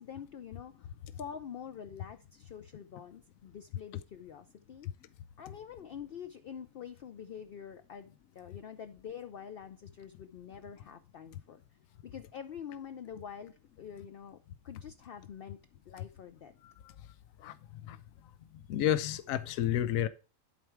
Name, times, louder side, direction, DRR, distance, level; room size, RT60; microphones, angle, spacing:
voice 1, 0.0-4.9 5.4-11.6 12.0-15.6 15.9-16.5, left 8 dB, 55° left, 0.7 m, -46 dB
voice 2, 18.7-20.1, left 11 dB, 85° left, 1.0 m, -30 dB
11.0 x 4.7 x 4.5 m
omnidirectional pair, 1.4 m